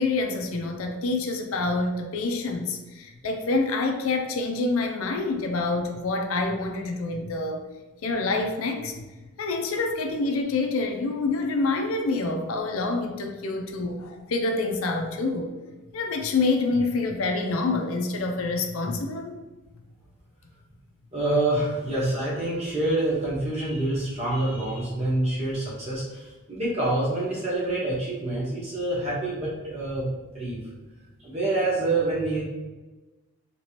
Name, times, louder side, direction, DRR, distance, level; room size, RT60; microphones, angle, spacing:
voice 1, 0.0-7.6 8.0-9.0 9.4-15.5 15.9-19.4, left 3 dB, 75° left, 3 dB, 0.4 m, -27 dB
voice 2, 21.1-30.7 31.2-32.4, right 2 dB, 30° right, -7 dB, 1.1 m, -27 dB
3.0 x 3.0 x 2.8 m, 1.2 s
head